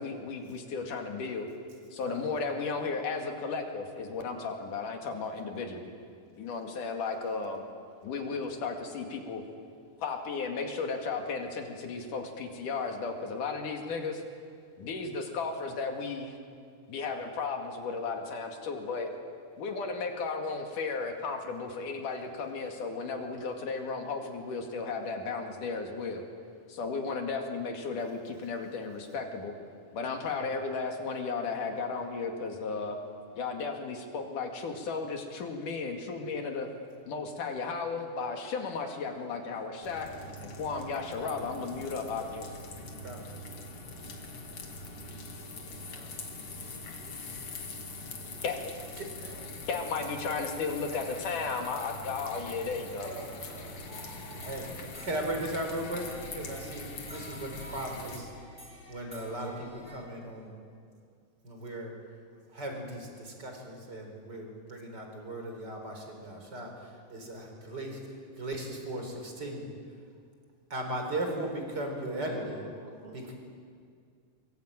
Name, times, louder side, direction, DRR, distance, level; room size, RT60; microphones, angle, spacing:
voice 1, 0.0-1.5 1.9-5.9 6.4-7.7 8.0-9.4 10.0-14.2 14.8-16.4 16.9-19.1 19.6-26.3 26.7-29.5 29.9-33.0 33.4-36.7 37.1-40.1 40.4-42.5 48.4-48.7 49.7-53.1, left 4 dB, 75° left, 3 dB, 3.7 m, -34 dB
sound 1, 39.8-58.2, left 2 dB, 50° left, 3.1 m, -43 dB
voice 2, 53.0-53.8 72.2-73.2, right 2 dB, 70° right, -2 dB, 6.2 m, -46 dB
sound 2, 53.8-60.0, equal, ahead, 6.2 m, -49 dB
voice 3, 55.0-56.0 56.4-58.3 58.9-60.5 61.4-61.9 62.5-66.7 67.1-68.0 68.4-69.6 70.7-72.6 73.1-73.3, right 1 dB, 30° right, 3 dB, 4.6 m, -37 dB
23.5 x 22.5 x 9.0 m, 2.2 s
omnidirectional pair, 3.7 m